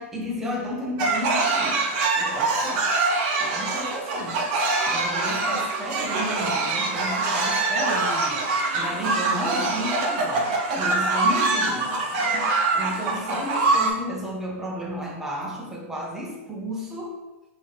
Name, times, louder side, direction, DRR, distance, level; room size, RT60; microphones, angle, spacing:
voice 1, 0.0-1.9 2.1-2.9 3.4-4.5 4.9-8.5 8.7-17.2, equal, 5° right, -3 dB, 0.8 m, -33 dB
sound 1, 1.0-13.9, right 3 dB, 40° right, 0.7 m, -24 dB
5.4 x 2.8 x 3.3 m, 1.1 s
supercardioid pair, 155°, 8 cm